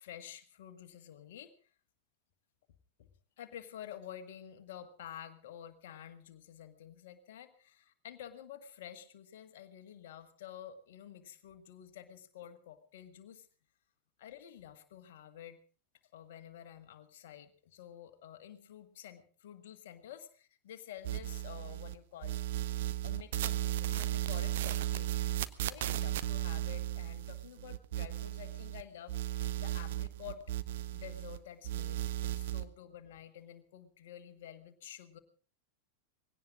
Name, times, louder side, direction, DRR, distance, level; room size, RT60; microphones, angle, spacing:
voice 1, 0.0-1.7 3.0-3.1 3.4-13.5 14.2-15.6 16.1-22.4 23.0-30.4 30.9-35.2, left 10 dB, 55° left, 8 dB, 1.8 m, -50 dB
sound 1, 21.0-21.9 22.2-28.8 29.1-31.4 31.6-32.6, right 14 dB, 55° right, 0.8 m, -35 dB
20.0 x 17.0 x 3.7 m, 0.39 s
figure-of-eight pair, 90°, 0 cm